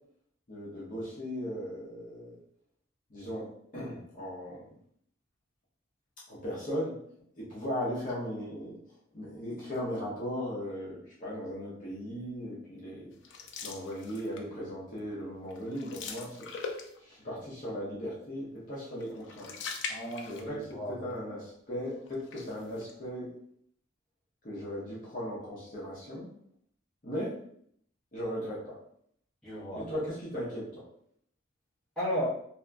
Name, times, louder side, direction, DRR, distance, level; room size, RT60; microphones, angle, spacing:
voice 1, 0.5-2.4 3.1-4.6 6.3-7.0 7.4-8.8 9.1-13.1 13.6-16.5 17.0-19.5 20.3-20.6 20.9-23.3 24.4-26.3 27.0-27.4 28.1-28.8 29.7-30.8, equal, 40° left, -7 dB, 0.7 m, -37 dB
sound 1, 13.2-14.6 15.0-15.2 15.5-17.2 19.0-20.8 21.1-21.2 22.1-22.9, left 5 dB, 60° left, 0.3 m, -42 dB
voice 2, 19.9-21.1 29.4-29.9 32.0-32.3, equal, ahead, -12 dB, 1.0 m, -34 dB
2.7 x 2.5 x 2.3 m, 0.67 s
head